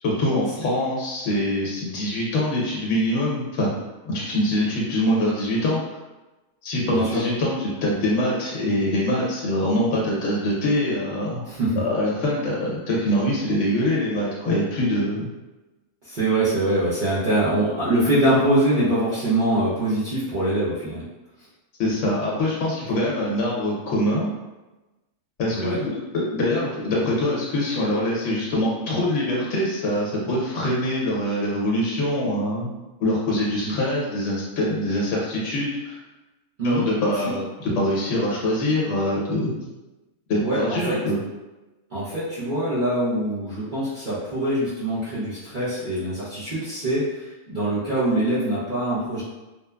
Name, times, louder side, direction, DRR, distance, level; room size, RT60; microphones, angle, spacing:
voice 1, 0.0-3.7 4.0-5.8 6.6-11.5 11.8-15.3 21.8-24.3 25.4-32.7 33.0-36.0 36.6-39.7 40.3-41.2, left 1 dB, 65° left, -4 dB, 1.0 m, -24 dB
voice 2, 6.9-7.2 11.5-11.8 16.0-21.0 25.5-25.8 33.6-33.7 36.6-36.9 40.4-41.0 41.9-49.2, right 1 dB, 45° right, -13 dB, 0.8 m, -23 dB
3.1 x 2.0 x 2.3 m, 1.1 s
omnidirectional pair, 1.4 m